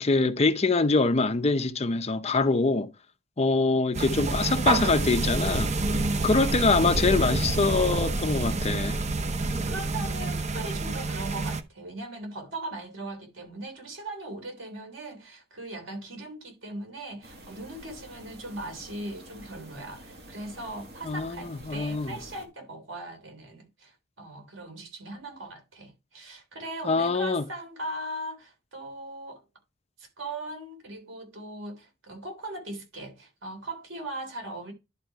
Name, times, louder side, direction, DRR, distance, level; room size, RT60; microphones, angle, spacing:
voice 1, 0.0-2.9 3.4-5.7 6.2-9.0 21.0-22.1 26.8-27.4, left 3 dB, 35° left, 0.6 m, -24 dB
sound 1, 3.9-11.6, right 3 dB, 35° right, 0.7 m, -28 dB
voice 2, 5.8-6.4 9.4-29.4 30.0-34.7, right 1 dB, 85° right, 3.3 m, -39 dB
sound 2, 17.2-22.5, right 1 dB, 55° right, 1.8 m, -48 dB
11.0 x 3.8 x 4.6 m
head